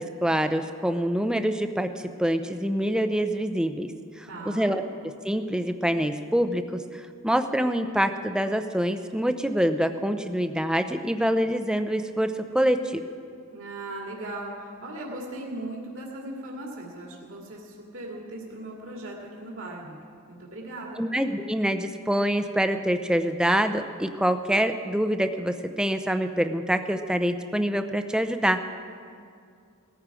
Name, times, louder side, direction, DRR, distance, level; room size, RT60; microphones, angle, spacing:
voice 1, 0.0-1.9 2.2-3.9 4.2-4.8 5.2-13.0 21.0-28.6, equal, 5° right, 8 dB, 0.5 m, -25 dB
voice 2, 4.3-4.7 13.5-20.0 20.3-21.1, right 1 dB, 60° right, -2 dB, 2.3 m, -38 dB
18.5 x 14.0 x 4.8 m, 2.3 s
head